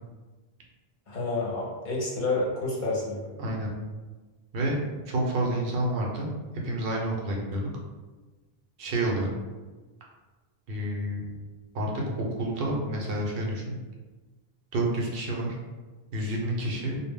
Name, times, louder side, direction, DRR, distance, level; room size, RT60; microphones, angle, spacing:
voice 1, 1.1-3.2, left 2 dB, 55° left, -5 dB, 0.7 m, -29 dB
voice 2, 5.1-6.3 6.6-7.7 8.8-9.3 10.7-11.3 11.7-13.8 14.7-15.6 16.1-17.0, right 1 dB, 70° right, -2 dB, 0.8 m, -29 dB
2.0 x 2.0 x 3.5 m, 1.3 s
omnidirectional pair, 1.0 m